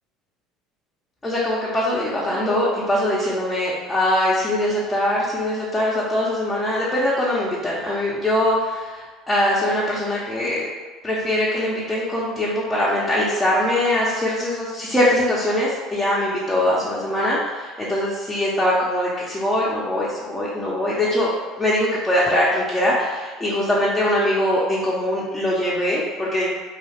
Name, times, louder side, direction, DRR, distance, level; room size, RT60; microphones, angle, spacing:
voice 1, 1.2-10.6 11.0-21.3 21.6-26.5, left 1 dB, 15° left, -7 dB, 0.7 m, -22 dB
2.4 x 2.2 x 3.3 m, 1.4 s
hypercardioid pair, 80°, 0 cm